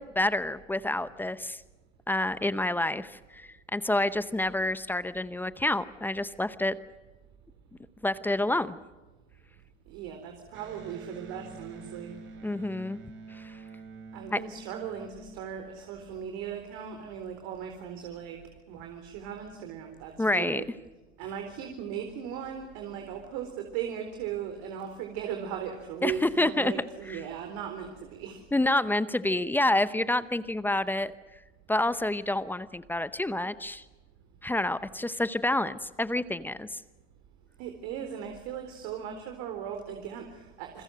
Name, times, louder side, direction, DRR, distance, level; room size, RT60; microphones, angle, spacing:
voice 1, 0.0-1.6 2.1-6.8 8.0-8.8 12.4-13.0 13.3-13.6 14.3-14.4 20.2-20.6 26.0-26.7 28.5-31.1 31.7-33.8 34.4-36.8, left 1 dB, 5° left, 15 dB, 0.8 m, -28 dB
voice 2, 9.9-12.2 14.1-20.7 21.2-28.4 37.6-40.8, right 8 dB, 50° right, 5 dB, 4.1 m, -38 dB
Electric guitar, 10.5-16.0, right 4 dB, 30° right, 4.4 m, -47 dB
28.5 x 22.0 x 6.4 m, 1.2 s
hypercardioid pair, 120°, 37 cm